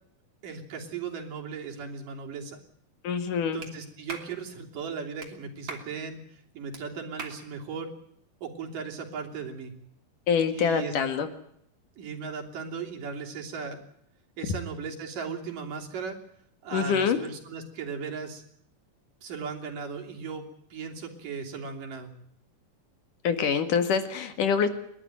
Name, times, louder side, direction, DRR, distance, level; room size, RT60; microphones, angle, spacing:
voice 1, 0.4-2.6 3.5-7.9 8.4-9.7 10.5-10.9 12.0-13.8 14.4-16.2 16.6-18.4 19.2-20.4 20.7-22.1, right 5 dB, 70° right, 2 dB, 4.8 m, -37 dB
voice 2, 3.0-3.6 10.3-11.3 16.7-17.2 23.2-24.7, left 6 dB, 70° left, 9 dB, 3.5 m, -25 dB
Clapping, 3.6-3.7 4.1-4.3 5.2-5.3 5.7-5.9 6.7-6.8 7.2-7.4, right 3 dB, 35° right, 3.5 m, -39 dB
30.0 x 12.5 x 9.0 m, 0.70 s
omnidirectional pair, 3.9 m